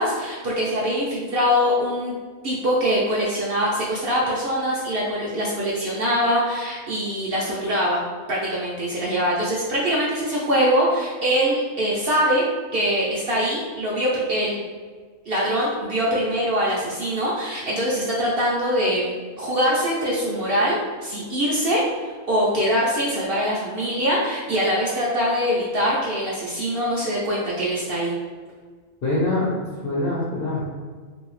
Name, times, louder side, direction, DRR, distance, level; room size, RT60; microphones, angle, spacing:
voice 1, 0.0-2.1 2.4-8.0 8.3-12.4 12.7-14.7 15.3-28.1, equal, 65° right, -5 dB, 0.6 m, -23 dB
voice 2, 29.0-29.5 29.8-30.6, left 2 dB, 55° left, -6 dB, 0.7 m, -23 dB
2.7 x 2.7 x 3.0 m, 1.5 s
omnidirectional pair, 1.5 m